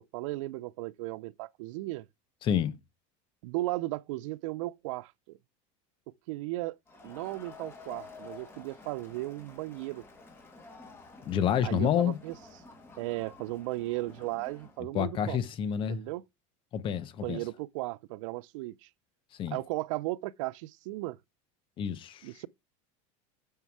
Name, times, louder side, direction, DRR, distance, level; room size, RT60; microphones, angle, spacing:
voice 1, 0.1-2.1 3.4-5.4 6.3-6.8 7.0-10.0 11.6-12.3 13.0-15.4 15.9-16.2 17.2-18.9 19.5-21.2 22.2-22.5, right 19 dB, 75° right, 0.4 m, -36 dB
voice 2, 2.4-2.8 11.2-12.2 14.9-16.0 16.7-17.4 19.3-19.6 21.8-22.3, left 9 dB, 30° left, 0.8 m, -29 dB
Crowd, 6.9-14.8, left 4 dB, 15° left, 2.4 m, -51 dB
7.2 x 5.5 x 4.6 m
supercardioid pair, 160°, 17 cm